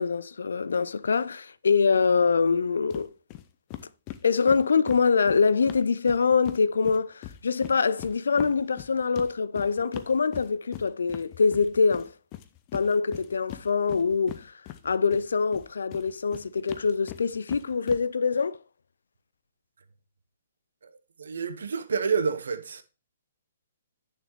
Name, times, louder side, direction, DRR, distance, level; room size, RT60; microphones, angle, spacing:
voice 1, 0.0-3.1 4.2-12.1 12.7-14.5 14.8-18.6, left 5 dB, 70° left, 0.4 m, -24 dB
sound 1, 2.9-3.0 3.3-3.4 3.7-6.6 6.8-15.2 15.5-18.0, left 14 dB, 35° left, 0.6 m, -41 dB
voice 2, 21.2-22.8, right 6 dB, 70° right, 0.8 m, -28 dB
9.1 x 6.6 x 3.1 m
figure-of-eight pair, 125°, 0 cm